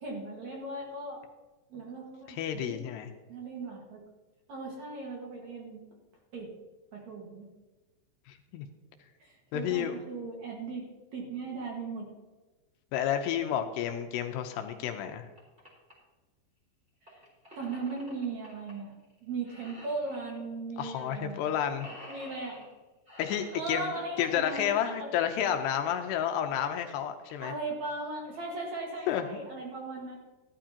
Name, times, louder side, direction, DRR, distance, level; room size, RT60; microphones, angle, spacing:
voice 1, 0.0-1.2 1.7-2.9 3.3-4.0 4.5-5.8 6.3-6.5 6.9-7.5 9.2-12.1 17.1-17.2 17.6-18.9 19.2-21.6 22.1-22.6 23.5-25.2 27.4-30.2, right 3 dB, 50° right, -2 dB, 2.4 m, -38 dB
voice 2, 2.3-3.1 8.3-8.7 9.5-9.9 12.9-15.3 20.8-21.9 23.2-23.9 24.2-27.5 29.1-29.4, left 9 dB, 80° left, 6 dB, 2.7 m, -31 dB
sound 1, 14.6-14.7 15.1-15.9 17.1-18.7 19.0-19.2 19.4-20.3 21.1-21.2 21.4-22.7 23.0-24.2 25.8-25.9 26.5-26.6 26.8-26.9 27.2-27.5 28.0-28.4, left 1 dB, 15° right, 3.5 m, -49 dB
14.5 x 12.5 x 2.9 m, 1.2 s
omnidirectional pair, 5.1 m